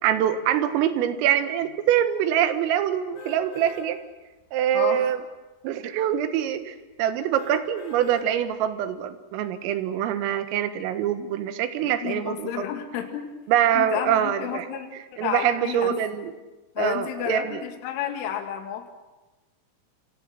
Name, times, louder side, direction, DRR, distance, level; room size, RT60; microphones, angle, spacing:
voice 1, 0.0-4.0 4.5-5.2 5.6-12.7 13.5-14.7 14.9-16.3 16.8-17.6, right 10 dB, 85° right, 9 dB, 4.0 m, -24 dB
sound 1, 3.1-3.9 4.4-4.5 7.3-8.3 8.8-8.9, left 1 dB, 35° left, 6.3 m, -43 dB
voice 2, 4.7-5.1 11.8-13.3 13.8-14.9 15.2-16.0 16.8-18.9, left 9 dB, 75° left, 4 dB, 4.4 m, -31 dB
28.5 x 26.5 x 6.5 m, 1.1 s
omnidirectional pair, 6.0 m